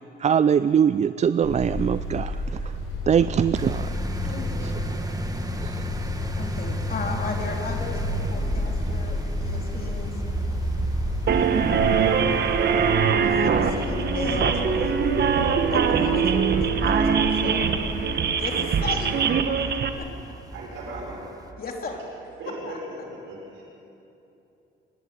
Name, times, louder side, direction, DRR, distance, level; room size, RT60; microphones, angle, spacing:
voice 1, 0.2-2.7 3.1-3.9 4.6-4.7 5.6-5.9, right 8 dB, 35° right, 0.4 m, -22 dB
sound 1, 1.4-18.2, left 2 dB, 80° left, 5.3 m, -31 dB
sound 2, 3.5-21.5, right 2 dB, 20° right, 1.7 m, -35 dB
voice 2, 4.3-5.1 6.4-10.1 13.1-15.0 15.7-17.7 18.2-19.1 20.0-20.1 21.6-22.0 22.7-22.8, left 3 dB, 50° left, 3.6 m, -35 dB
sound 3, 11.3-19.9, right 6 dB, 55° right, 1.3 m, -22 dB
voice 3, 20.5-21.3 22.4-22.8 23.1-23.6, right 2 dB, 90° right, 5.7 m, -37 dB
24.0 x 12.0 x 9.6 m
cardioid pair, 90°, 20 cm